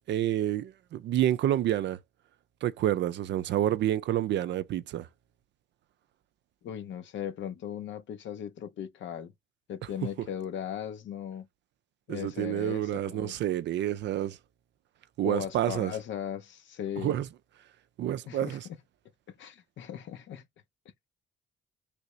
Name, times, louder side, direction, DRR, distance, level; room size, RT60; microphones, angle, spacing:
voice 1, 0.1-2.0 2.6-5.1 10.2-10.3 12.1-14.4 15.2-15.9 17.0-17.3 18.0-18.6, right 12 dB, 65° right, 0.4 m, -28 dB
voice 2, 6.6-9.3 9.7-11.5 12.1-13.3 15.2-17.2 18.3-18.8 19.4-20.4, left 9 dB, 70° left, 0.7 m, -38 dB
3.4 x 2.7 x 3.1 m
cardioid pair, 90°, 20 cm